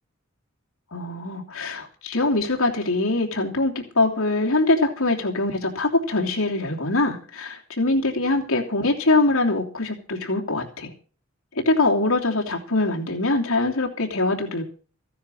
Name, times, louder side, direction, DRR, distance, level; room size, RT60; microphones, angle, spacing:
voice 1, 0.9-10.9 11.5-14.6, left 2 dB, 70° left, 1 dB, 3.0 m, -23 dB
15.5 x 10.0 x 6.5 m, 0.39 s
head